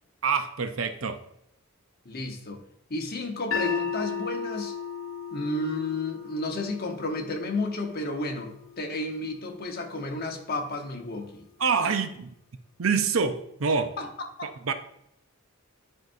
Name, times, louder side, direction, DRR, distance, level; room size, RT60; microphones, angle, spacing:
voice 1, 0.2-1.2 11.6-12.3 12.8-14.0 14.4-14.7, right 5 dB, 70° right, 9 dB, 0.6 m, -26 dB
voice 2, 2.0-2.6 2.9-4.7 5.3-11.4 14.0-14.5, left 2 dB, 50° left, 3 dB, 1.0 m, -32 dB
sound 1, 3.5-9.7, left 6 dB, 65° left, 0.7 m, -36 dB
10.5 x 4.6 x 2.6 m, 0.76 s
head